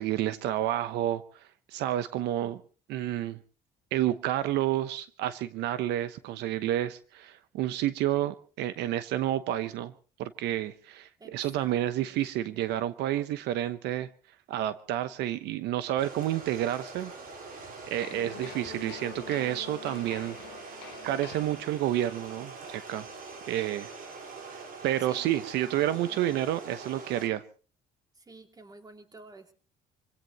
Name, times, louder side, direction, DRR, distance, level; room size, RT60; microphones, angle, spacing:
voice 1, 0.0-2.6 2.9-3.4 3.9-9.9 10.2-14.1 14.5-17.1 17.5-20.4 20.6-23.1 23.5-23.9 24.8-27.4, right 13 dB, 85° right, 0.9 m, -30 dB
voice 2, 11.2-12.6 25.1-26.4 28.1-29.5, right 3 dB, 20° right, 2.7 m, -52 dB
sound 1, 16.0-27.3, right 4 dB, 60° right, 4.4 m, -44 dB
sound 2, 18.0-22.1, left 17 dB, 85° left, 0.8 m, -46 dB
26.0 x 17.0 x 3.0 m
cardioid pair, 110°, 17 cm